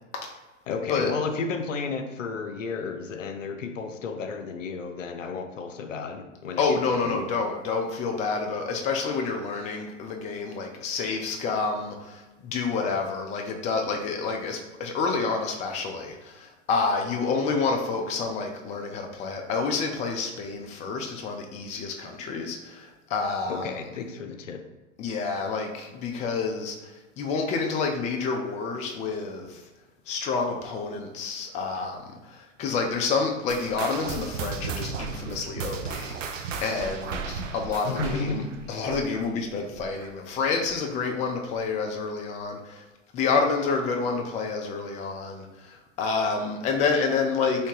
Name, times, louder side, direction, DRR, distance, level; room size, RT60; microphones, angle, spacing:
voice 1, 0.7-7.2 23.5-24.6 37.8-38.5, left 5 dB, 90° left, 6 dB, 0.5 m, -32 dB
voice 2, 6.6-23.7 25.0-29.6 30.1-42.8 43.1-47.7, left 4 dB, 20° left, 2 dB, 0.4 m, -29 dB
sound 1, 33.5-40.3 40.6-40.9 41.5-41.6 42.4-42.5, right 5 dB, 85° right, 0.5 m, -35 dB
3.3 x 3.2 x 2.8 m, 1.1 s
hypercardioid pair, 105°, 37 cm